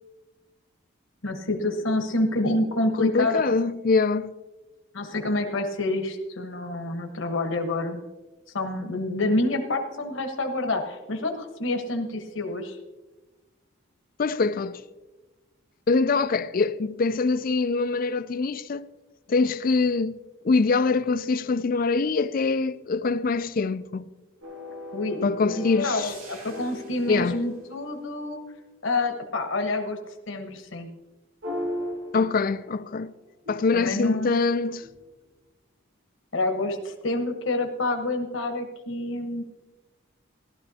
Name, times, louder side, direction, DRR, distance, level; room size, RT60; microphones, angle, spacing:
voice 1, 1.2-3.4 4.9-8.0 8.5-12.8 24.9-28.4 28.8-30.0 30.3-30.9 33.7-34.3 36.3-39.4, left 2 dB, 70° left, 1.2 m, -28 dB
voice 2, 3.0-4.3 14.2-14.8 15.9-18.9 19.3-20.2 20.4-24.1 25.2-26.1 27.1-27.4 32.1-33.1 33.5-34.8, left 4 dB, 40° left, 0.4 m, -24 dB
sound 1, 24.4-28.6 31.4-32.9 33.4-35.2, left 1 dB, 90° right, 2.5 m, -38 dB
15.5 x 12.5 x 2.8 m
head